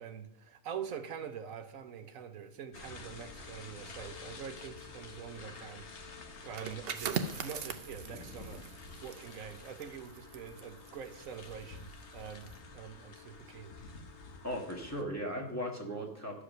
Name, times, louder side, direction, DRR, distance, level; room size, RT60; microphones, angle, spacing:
voice 1, 0.0-6.1 6.4-8.6 9.0-13.7, right 7 dB, 85° right, 8 dB, 1.2 m, -45 dB
sound 1, 2.7-15.0, left 3 dB, 60° left, 1.3 m, -49 dB
sound 2, 6.4-11.9 12.3-12.6, right 6 dB, 55° right, 0.8 m, -41 dB
voice 2, 14.4-16.4, equal, 10° left, -1 dB, 1.5 m, -37 dB
12.0 x 5.0 x 6.2 m, 0.81 s
omnidirectional pair, 1.4 m